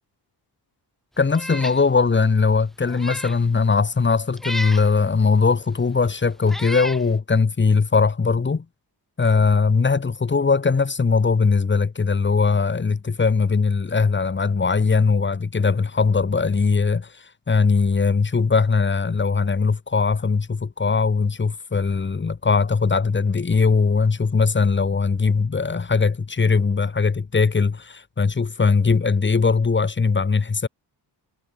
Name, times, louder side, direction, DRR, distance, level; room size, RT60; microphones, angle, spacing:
voice 1, 1.2-8.6 9.2-30.7, left 4 dB, 25° left, 2.9 m, -20 dB
Meow, 1.3-1.8 2.2-2.3 2.9-3.4 4.4-4.9 5.8-5.9 6.5-7.0, equal, ahead, 2.1 m, -32 dB
wide cardioid pair, 150°, 43 cm